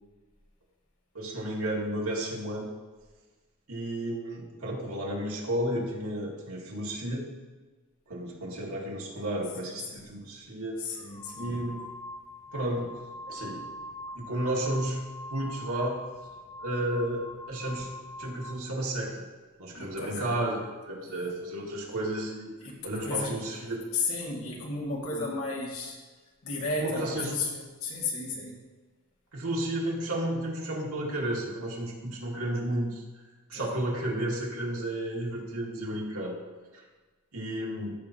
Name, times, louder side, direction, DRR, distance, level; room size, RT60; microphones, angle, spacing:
voice 1, 1.1-2.7 3.7-7.2 8.1-10.8 11.4-11.8 12.5-12.9 13.3-13.6 14.1-15.0 15.3-16.0 16.6-17.9 18.2-19.2 19.6-22.5 22.8-23.8 25.1-25.3 26.8-27.3 29.3-33.2 33.5-36.4 36.7-36.8 37.3-37.9, right 1 dB, 80° right, -4 dB, 2.2 m, -32 dB
voice 2, 9.6-10.2 10.8-11.5 19.7-20.4 21.0-21.3 22.6-23.4 23.9-26.0 26.4-28.6 33.5-33.7, left 3 dB, 75° left, -4 dB, 2.1 m, -34 dB
sound 1, 10.1-10.2 11.0-18.7, left 1 dB, 15° left, 0.3 m, -43 dB
14.5 x 6.0 x 2.8 m, 1.3 s
head